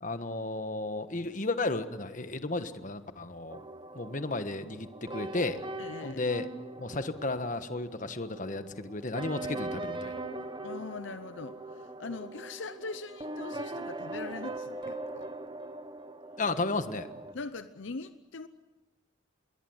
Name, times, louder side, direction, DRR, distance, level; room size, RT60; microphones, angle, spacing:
voice 1, 0.0-3.6 3.9-5.6 6.0-6.5 6.8-10.1 16.4-17.1, left 2 dB, 40° left, 9 dB, 1.4 m, -33 dB
sound 1, 3.5-17.3, right 2 dB, 25° right, 1.1 m, -41 dB
voice 2, 5.8-6.3 10.6-15.3 17.3-18.5, left 3 dB, 65° left, 11 dB, 0.8 m, -41 dB
26.5 x 22.5 x 8.0 m, 1.2 s
head